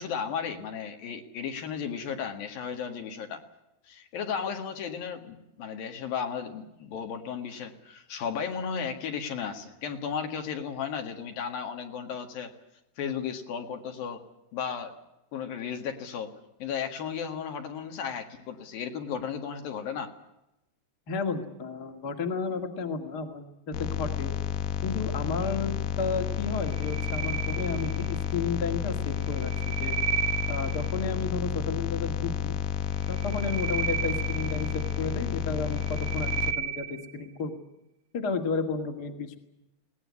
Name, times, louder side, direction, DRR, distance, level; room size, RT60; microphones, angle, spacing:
voice 1, 0.0-3.4 3.9-12.5 13.0-14.2 14.5-14.9 15.3-16.3 16.6-20.1, left 7 dB, 65° left, 5 dB, 3.5 m, -34 dB
voice 2, 21.1-24.3 24.8-30.0 30.5-32.6 33.1-37.5 38.1-39.4, left 4 dB, 30° left, 5 dB, 2.0 m, -32 dB
sound 1, 23.7-36.5, left 8 dB, 90° left, 3.2 m, -31 dB
sound 2, 26.6-28.3 29.2-31.1 33.0-35.1 35.6-37.2, right 8 dB, 45° right, 1.9 m, -33 dB
21.5 x 18.5 x 9.7 m, 0.91 s
omnidirectional pair, 4.5 m